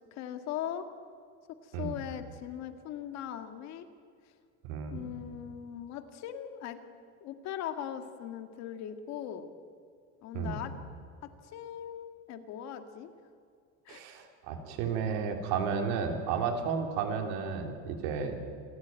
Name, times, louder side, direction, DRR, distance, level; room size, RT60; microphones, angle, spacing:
voice 1, 0.1-0.9 1.5-3.9 4.9-6.8 7.2-9.5 10.2-10.7 11.2-13.1 13.9-14.0, left 10 dB, 45° left, 8 dB, 1.9 m, -40 dB
voice 2, 4.6-5.0 10.3-10.6 13.9-18.4, right 6 dB, 70° right, 5 dB, 3.5 m, -32 dB
27.5 x 13.5 x 9.4 m, 2.2 s
cardioid pair, 160°, 36 cm